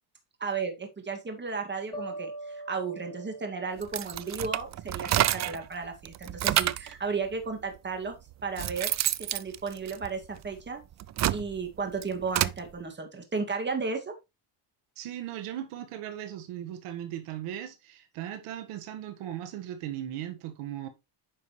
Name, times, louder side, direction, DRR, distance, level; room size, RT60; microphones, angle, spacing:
voice 1, 0.4-8.2 8.4-8.9 9.3-10.8 11.3-14.1, right 4 dB, 20° right, 2.2 m, -34 dB
sound 1, 1.9-5.0, right 1 dB, 10° left, 1.3 m, -43 dB
sound 2, 3.8-5.7 6.1-6.9 7.8-7.9 8.3-10.5 10.9-12.6, right 12 dB, 35° right, 0.4 m, -29 dB
voice 2, 15.0-20.9, right 11 dB, 80° right, 1.6 m, -38 dB
9.5 x 5.7 x 3.2 m
cardioid pair, 120°, 50 cm